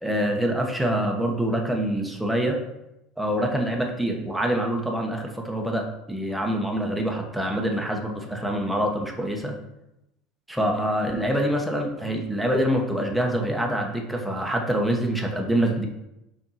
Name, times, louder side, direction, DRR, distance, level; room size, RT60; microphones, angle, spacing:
voice 1, 0.0-2.6 3.2-9.5 10.5-15.9, right 1 dB, ahead, 1 dB, 1.1 m, -25 dB
5.4 x 4.3 x 5.6 m, 0.89 s
supercardioid pair, 135°, 0 cm